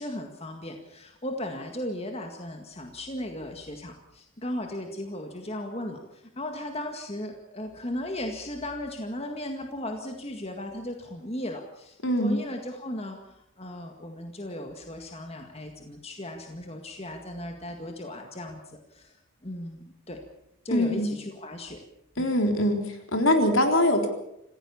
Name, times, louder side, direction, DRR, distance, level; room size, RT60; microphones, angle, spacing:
voice 1, 0.0-19.2 19.4-20.2 20.6-21.8 22.2-22.3, left 1 dB, 25° left, 4 dB, 1.9 m, -36 dB
voice 2, 12.0-12.4 20.7-21.1 22.2-24.1, left 1 dB, 65° left, 5 dB, 3.7 m, -23 dB
26.5 x 16.0 x 7.1 m, 0.82 s
head